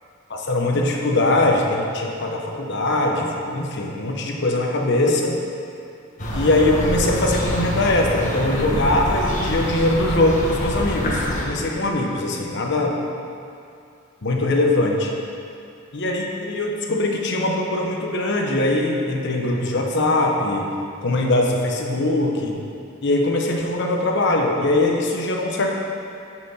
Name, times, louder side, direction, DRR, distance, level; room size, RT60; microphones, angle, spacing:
voice 1, 0.3-5.4 6.3-13.0 14.2-15.1 15.9-20.7 21.0-22.6 23.0-25.7, left 2 dB, 55° left, 0 dB, 0.9 m, -21 dB
sound 1, 6.2-11.5, equal, 35° left, 1.3 m, -25 dB
6.6 x 6.0 x 5.6 m, 2.6 s
head